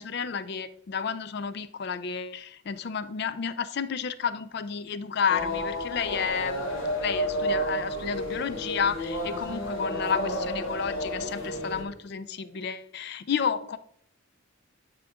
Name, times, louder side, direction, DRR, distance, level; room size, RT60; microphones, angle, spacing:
voice 1, 0.0-13.8, left 6 dB, 50° left, 14 dB, 0.4 m, -31 dB
sound 1, 5.3-11.8, equal, 65° left, 1.3 m, -31 dB
9.8 x 3.7 x 3.5 m, 0.66 s
head